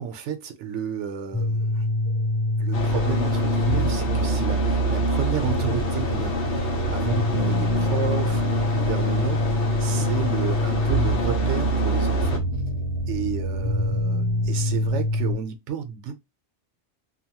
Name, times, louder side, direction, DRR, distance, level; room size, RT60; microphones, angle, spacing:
voice 1, 0.0-1.9 2.6-12.5 13.1-16.2, right 8 dB, 80° right, 0.9 m, -32 dB
sound 1, 1.3-15.3, equal, 30° right, 0.4 m, -25 dB
sound 2, 2.7-12.4, left 2 dB, 70° left, 1.2 m, -28 dB
2.7 x 2.2 x 2.8 m
omnidirectional pair, 1.2 m